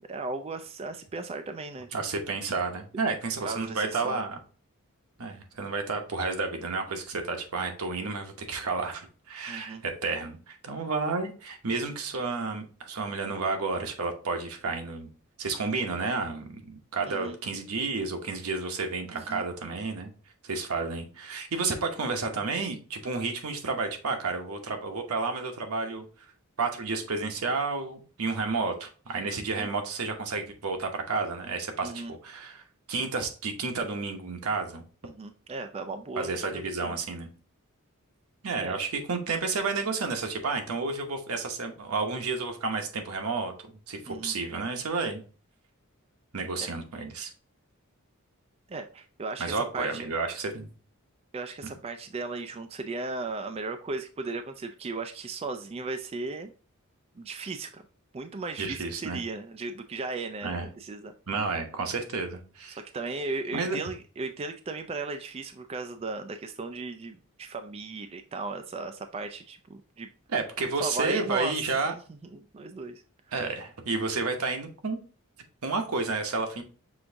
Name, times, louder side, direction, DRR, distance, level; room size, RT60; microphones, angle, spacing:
voice 1, 0.1-1.9 3.4-4.2 9.5-9.8 17.1-17.4 19.1-19.4 29.5-29.7 31.8-32.1 35.0-37.0 38.6-38.8 44.1-44.3 48.7-50.0 51.3-56.5 57.2-57.8 58.1-61.1 62.7-70.1 70.8-71.7 72.1-73.0, right 3 dB, 25° right, 7 dB, 0.3 m, -36 dB
voice 2, 1.9-4.4 5.2-15.1 15.4-20.1 20.4-26.0 26.6-32.6 32.9-34.8 36.2-37.3 38.4-43.5 43.9-45.2 46.3-47.3 49.4-50.7 58.6-59.2 60.4-60.7 61.3-62.8 63.5-63.8 70.3-71.9 73.3-75.0 75.6-76.6, right 4 dB, 85° right, 4 dB, 0.9 m, -31 dB
6.1 x 2.6 x 3.4 m, 0.39 s
head